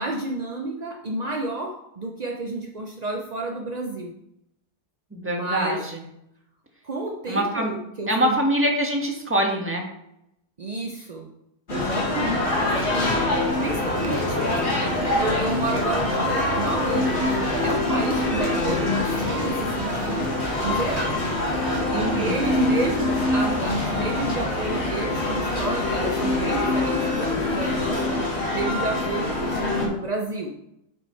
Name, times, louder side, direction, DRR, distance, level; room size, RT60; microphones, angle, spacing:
voice 1, 0.0-4.1 5.3-5.9 6.8-8.4 10.6-11.3 11.7-20.3 20.6-21.3 21.9-28.2 28.5-30.6, right 2 dB, 50° right, 1 dB, 0.5 m, -30 dB
voice 2, 5.1-6.0 7.3-9.9 21.9-22.4, equal, 10° right, 0 dB, 1.2 m, -24 dB
sound 1, 11.7-29.9, left 2 dB, 45° left, 2.0 m, -25 dB
Conversation, 13.5-22.6, right 6 dB, 70° right, 1.2 m, -37 dB
8.1 x 5.4 x 4.5 m, 0.81 s
omnidirectional pair, 1.7 m